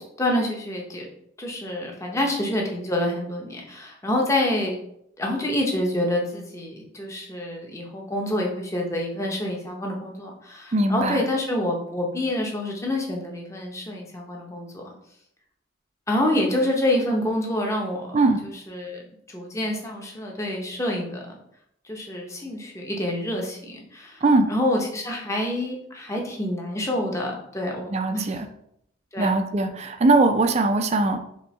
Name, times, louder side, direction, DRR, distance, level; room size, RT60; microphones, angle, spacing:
voice 1, 0.2-1.1 1.4-4.8 5.2-14.8 16.1-19.0 19.3-21.3 21.8-28.3 29.1-29.3, left 1 dB, 15° left, 0 dB, 0.7 m, -27 dB
voice 2, 10.7-11.2 18.1-18.4 24.2-24.5 27.9-28.4 29.2-31.2, right 2 dB, 35° right, 7 dB, 0.4 m, -20 dB
4.3 x 3.1 x 3.2 m, 0.74 s
head